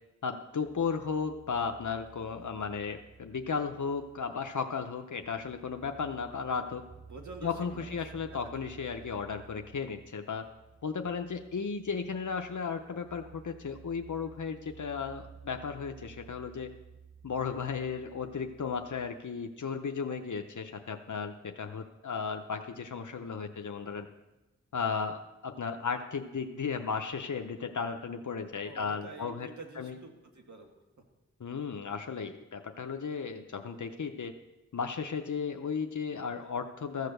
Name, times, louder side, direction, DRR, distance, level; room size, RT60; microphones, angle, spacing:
voice 1, 0.2-6.8 7.4-10.5 10.8-16.7 17.2-24.1 24.7-30.0 31.4-34.3 34.7-37.1, left 5 dB, 85° left, 5 dB, 0.7 m, -35 dB
sound 1, 0.6-19.1, right 6 dB, 25° right, 0.8 m, -54 dB
voice 2, 7.1-8.1 28.6-30.7, right 3 dB, 75° right, 1 dB, 1.8 m, -47 dB
14.5 x 6.6 x 6.6 m, 1.0 s
wide cardioid pair, 50°, 29 cm